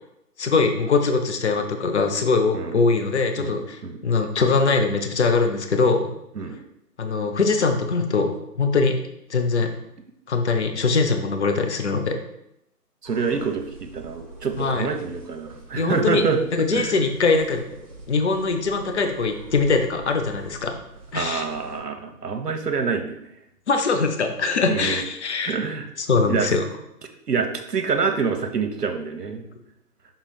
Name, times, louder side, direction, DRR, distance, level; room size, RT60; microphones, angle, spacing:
voice 1, 0.4-6.1 7.0-9.0 9.3-9.7 10.3-12.2 14.6-14.9 15.8-16.2 16.5-17.6 18.1-20.8 21.1-21.5 23.7-25.6 26.0-26.6, left 4 dB, 45° left, 5 dB, 0.7 m, -22 dB
sound 1, 13.0-21.8, right 2 dB, 20° right, 0.8 m, -44 dB
voice 2, 13.0-16.4 16.7-16.9 21.1-23.2 24.7-25.0 25.4-25.9 26.3-26.5 27.3-29.4, right 5 dB, 75° right, 5 dB, 1.0 m, -26 dB
6.2 x 3.9 x 4.2 m, 0.79 s
figure-of-eight pair, 150°, 48 cm